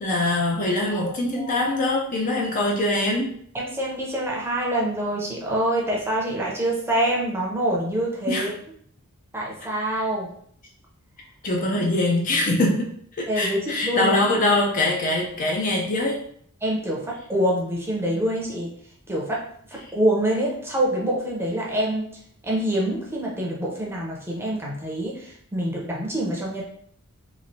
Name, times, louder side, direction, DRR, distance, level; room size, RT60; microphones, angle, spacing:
voice 1, 0.0-3.4 8.3-8.5 9.9-10.1 11.4-12.9 13.2-16.2, left 2 dB, 35° left, -1 dB, 0.4 m, -23 dB
voice 2, 0.9-1.6 3.5-8.5 9.3-10.3 11.7-11.9 13.3-14.4 16.6-18.7 19.1-19.4 19.7-22.1 22.4-26.6, right 1 dB, 10° right, -3 dB, 0.6 m, -26 dB
3.1 x 2.5 x 2.7 m, 0.63 s
head